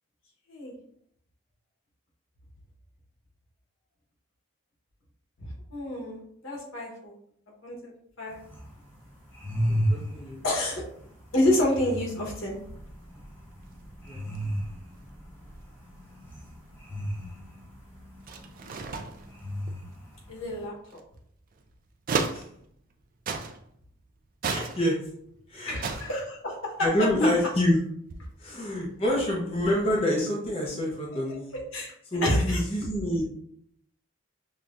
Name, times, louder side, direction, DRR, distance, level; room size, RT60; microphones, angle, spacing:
voice 1, 5.4-7.1 7.6-7.9 8.2-8.4 10.4-10.8 11.3-12.6 20.3-20.7 25.7-26.7 31.7-31.9 32.2-32.6, left 1 dB, 75° left, -3 dB, 1.2 m, -28 dB
sound 1, 8.3-20.6, equal, 10° left, 1.0 m, -35 dB
voice 2, 9.7-10.4 14.0-14.2 22.3-22.4 24.5-25.0 25.5-26.0 26.8-27.8 28.4-31.5 32.1-33.3, left 1 dB, 30° left, -4 dB, 0.7 m, -27 dB
sound 2, 12.5-23.0 23.3-23.9 24.3-25.4 25.7-27.6 27.8-29.1, right 4 dB, 40° right, 0.3 m, -37 dB
5.6 x 2.2 x 2.5 m, 0.68 s
head